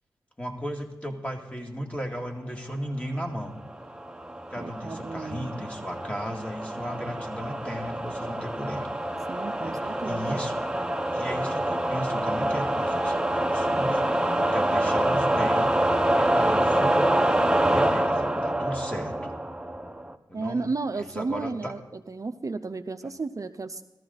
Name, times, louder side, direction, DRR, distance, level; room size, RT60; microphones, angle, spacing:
voice 1, 0.4-3.6 4.5-8.9 9.6-10.7 11.1-17.2 17.5-19.3 20.3-20.7 21.0-21.7, equal, 15° left, 2 dB, 2.2 m, -35 dB
sound 1, 3.7-20.1, right 1 dB, 10° right, 0.8 m, -26 dB
voice 2, 4.6-5.7 9.3-10.4 20.3-23.8, right 3 dB, 45° right, 7 dB, 0.6 m, -33 dB
14.5 x 13.5 x 4.0 m, 1.1 s
cardioid pair, 45°, 8 cm